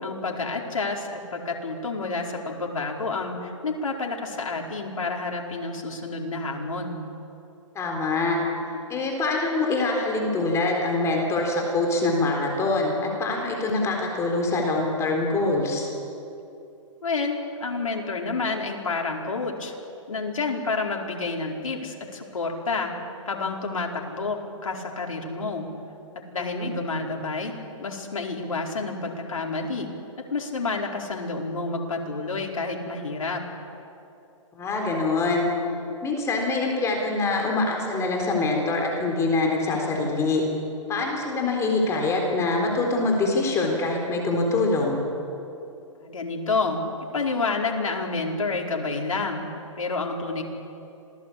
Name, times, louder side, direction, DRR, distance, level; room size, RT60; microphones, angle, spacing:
voice 1, 0.0-7.0 17.0-19.7 20.1-22.9 23.3-25.7 26.3-29.9 30.3-33.4 46.0-46.8 47.1-49.5 49.7-50.4, left 3 dB, 80° left, 0 dB, 4.7 m, -29 dB
voice 2, 7.7-8.4 8.9-15.9 26.4-26.7 34.6-35.5 36.0-40.4 40.9-45.0, left 3 dB, 15° left, 1 dB, 3.9 m, -24 dB
26.5 x 19.0 x 8.6 m, 2.7 s
hypercardioid pair, 135°, 17 cm